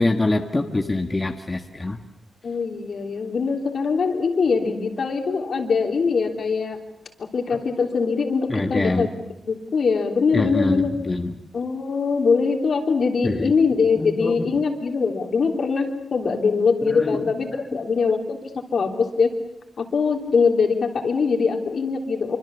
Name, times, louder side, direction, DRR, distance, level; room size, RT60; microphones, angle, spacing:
voice 1, 0.0-2.0 8.5-9.1 10.3-11.3 13.2-13.5 14.0-14.5 16.9-17.2 17.5-17.6, left 2 dB, 20° left, 3 dB, 1.5 m, -24 dB
voice 2, 2.4-6.8 7.2-9.1 9.5-10.9 11.5-19.4 19.8-22.4, left 5 dB, 60° left, 3 dB, 3.3 m, -22 dB
25.5 x 25.0 x 7.2 m, 0.90 s
wide cardioid pair, 120°, 0 cm